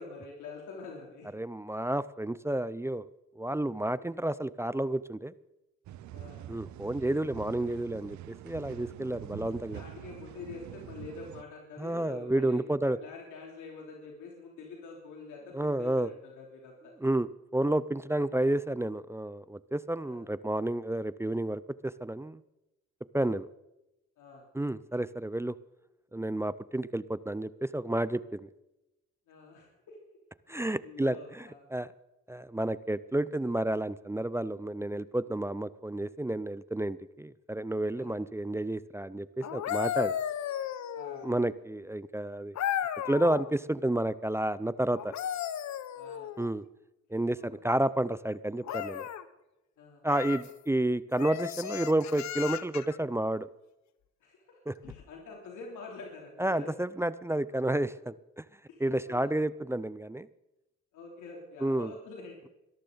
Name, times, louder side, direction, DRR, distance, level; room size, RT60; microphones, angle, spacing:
voice 1, 0.0-1.3 3.9-4.2 6.1-6.4 9.7-12.6 12.8-16.9 18.2-18.3 20.0-20.3 24.2-24.5 29.3-30.0 30.5-31.7 38.0-38.2 40.9-41.3 45.9-46.3 47.4-47.6 49.8-50.0 54.2-56.7 57.5-57.6 58.7-59.3 60.9-62.4, left 4 dB, 80° left, -1 dB, 3.1 m, -47 dB
voice 2, 1.3-3.1 3.4-5.3 6.5-9.8 11.8-13.0 15.5-16.1 17.0-22.4 23.1-23.5 24.5-25.5 26.1-28.5 30.5-31.9 32.3-40.1 41.2-42.6 43.1-45.1 46.4-46.7 47.1-49.1 50.0-53.5 54.7-54.8 56.4-58.4 58.8-60.3 61.6-61.9, right 1 dB, 10° right, 17 dB, 0.4 m, -30 dB
sound 1, 5.9-11.4, right 12 dB, 70° right, 0.6 m, -45 dB
sound 2, 39.4-41.4 42.6-43.5 44.9-46.5 48.6-49.2 50.1-50.5 51.2-53.0 54.8-55.0, left 10 dB, 65° left, 0.9 m, -35 dB
22.0 x 13.5 x 3.9 m, 0.95 s
cardioid pair, 90°, 30 cm